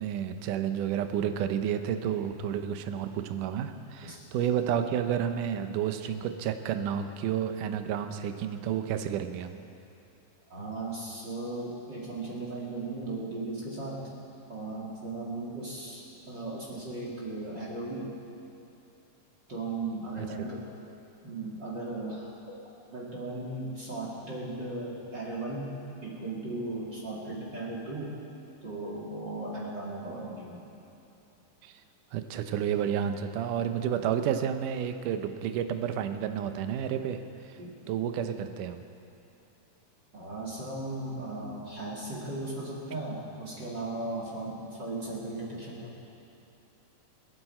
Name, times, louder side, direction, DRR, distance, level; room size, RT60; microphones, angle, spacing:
voice 1, 0.0-9.6 20.2-20.3 31.6-31.7 32.1-37.2 37.4-37.6 37.9-38.9, right 9 dB, 75° right, 8 dB, 2.2 m, -30 dB
voice 2, 10.5-14.1 14.5-18.1 19.5-20.7 21.2-22.6 22.9-25.8 26.0-28.2 28.6-30.6 37.6-37.8 40.1-45.9, right 2 dB, 35° right, -5 dB, 2.3 m, -37 dB
28.5 x 9.7 x 4.3 m, 2.8 s
omnidirectional pair, 4.0 m